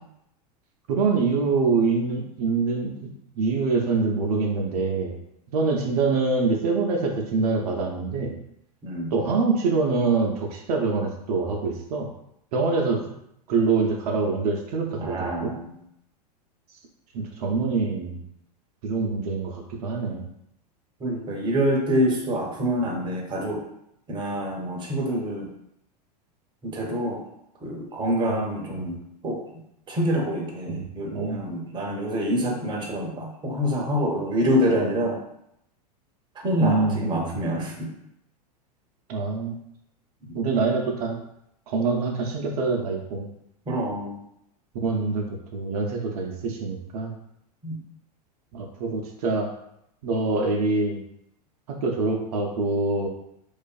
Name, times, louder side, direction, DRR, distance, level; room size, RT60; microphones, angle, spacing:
voice 1, 0.9-5.1 5.5-8.4 9.1-12.1 12.5-13.0 13.5-15.5 17.1-18.2 18.8-20.3 28.3-28.5 28.8-28.9 30.7-30.9 31.1-31.4 36.6-37.4 39.1-39.6 40.3-41.2 41.7-43.3 44.7-45.3 45.5-47.1 48.5-49.5 50.0-51.0 51.7-53.1, right 4 dB, 65° right, 1 dB, 0.5 m, -25 dB
voice 2, 15.0-15.7 21.0-23.6 24.1-25.5 26.6-27.2 27.6-29.4 29.9-35.2 36.4-37.9 40.3-40.4 43.7-44.2 47.6-47.8, equal, 20° right, -1 dB, 0.6 m, -26 dB
2.5 x 2.3 x 2.3 m, 0.77 s
hypercardioid pair, 100°, 21 cm